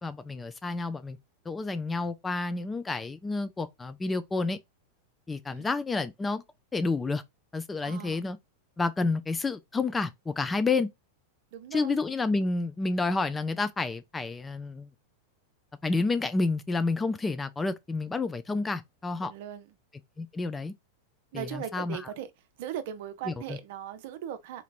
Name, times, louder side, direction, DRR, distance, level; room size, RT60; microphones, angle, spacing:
voice 1, 0.0-1.2 1.5-4.6 5.3-6.4 6.7-7.2 7.5-8.4 8.8-10.9 11.7-14.9 15.8-19.3 20.2-20.7 21.3-22.0 23.3-23.4, left 3 dB, 15° left, 0.4 m, -29 dB
voice 2, 7.8-8.2 11.5-12.0 19.2-19.7 21.3-22.3 22.6-24.6, right 10 dB, 50° right, 0.6 m, -39 dB
4.3 x 2.9 x 2.5 m
figure-of-eight pair, 90°, 0 cm